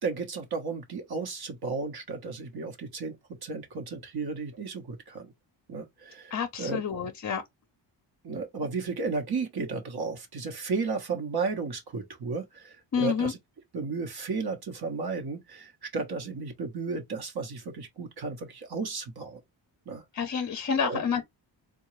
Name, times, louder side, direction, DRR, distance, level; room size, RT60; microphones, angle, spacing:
voice 1, 0.0-3.2 3.4-5.3 5.7-6.8 8.2-13.4 13.7-19.4 19.9-20.0 20.8-21.0, right 4 dB, 55° right, 1.0 m, -34 dB
voice 2, 6.3-7.4 12.9-13.3 20.1-21.2, left 6 dB, 40° left, 0.6 m, -28 dB
3.7 x 2.3 x 3.0 m
cardioid pair, 110°, 46 cm